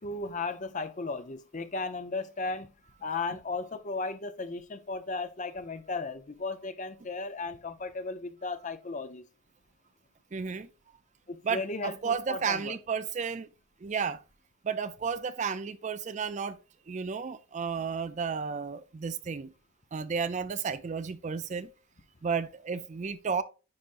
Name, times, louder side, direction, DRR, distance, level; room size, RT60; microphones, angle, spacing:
voice 1, 0.0-2.7 3.0-9.3 11.3-12.8, left 3 dB, 35° left, 0.7 m, -35 dB
voice 2, 10.3-10.7 11.4-13.5 13.8-14.2 14.6-16.6 16.9-19.5 19.9-21.7 22.2-23.4, right 6 dB, 35° right, 0.4 m, -32 dB
9.7 x 5.1 x 2.5 m
head